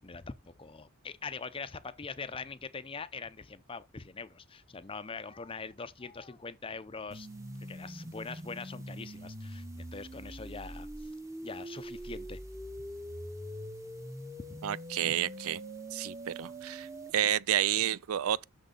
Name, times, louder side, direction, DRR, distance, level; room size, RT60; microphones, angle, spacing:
voice 1, 0.0-7.3 7.7-11.1 11.4-12.4 14.5-14.6, left 4 dB, 25° left, 0.6 m, -43 dB
sound 1, 7.1-17.1, right 1 dB, 15° right, 1.0 m, -43 dB
voice 2, 14.6-15.6 15.9-16.9 17.1-18.4, right 11 dB, 75° right, 0.4 m, -30 dB
6.5 x 6.3 x 5.3 m
head